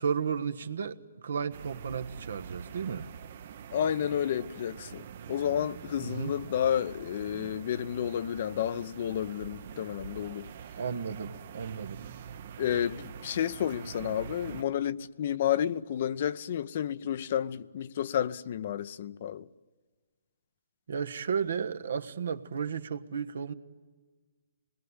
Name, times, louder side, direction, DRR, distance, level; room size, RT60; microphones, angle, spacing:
voice 1, 0.0-3.1 6.0-6.3 10.8-12.0 20.9-23.5, right 6 dB, 75° right, 1.4 m, -33 dB
sound 1, 1.5-14.6, right 8 dB, 50° right, 1.0 m, -45 dB
voice 2, 3.7-10.5 12.6-19.5, left 9 dB, 50° left, 0.8 m, -31 dB
26.0 x 21.0 x 9.7 m
hypercardioid pair, 150°, 0 cm